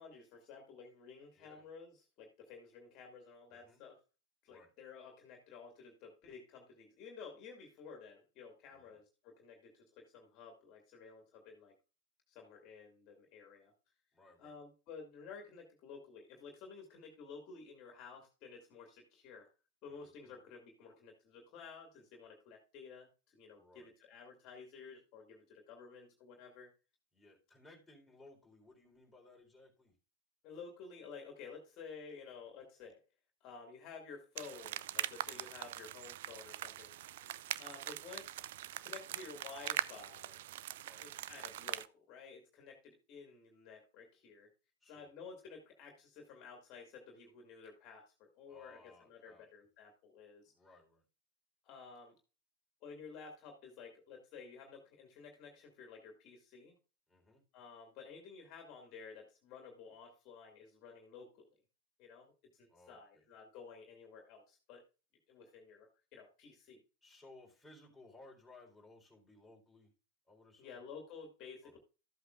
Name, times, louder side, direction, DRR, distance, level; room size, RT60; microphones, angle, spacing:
voice 1, 0.0-4.0 4.4-11.7 12.3-13.7 14.4-19.5 19.8-26.7 30.4-33.0 33.4-36.9 37.6-38.4 38.8-40.4 41.0-44.5 44.9-50.5 51.6-52.1 52.8-56.7 57.5-61.5 62.0-64.8 65.3-66.8 70.6-71.8, left 5 dB, 35° left, 2 dB, 2.3 m, -53 dB
voice 2, 3.5-3.8 4.5-4.7 8.7-9.0 14.1-14.6 19.9-20.4 23.6-23.9 27.1-29.9 35.2-35.5 40.8-41.1 44.8-45.1 48.5-49.5 50.5-51.0 57.1-57.4 62.7-63.2 67.0-69.9 70.3-70.8 71.6-71.7, left 2 dB, 5° left, -2 dB, 4.0 m, -61 dB
sound 1, 34.4-41.9, right 14 dB, 55° right, 0.4 m, -42 dB
13.5 x 8.0 x 2.5 m, 0.32 s
figure-of-eight pair, 90°, 0 cm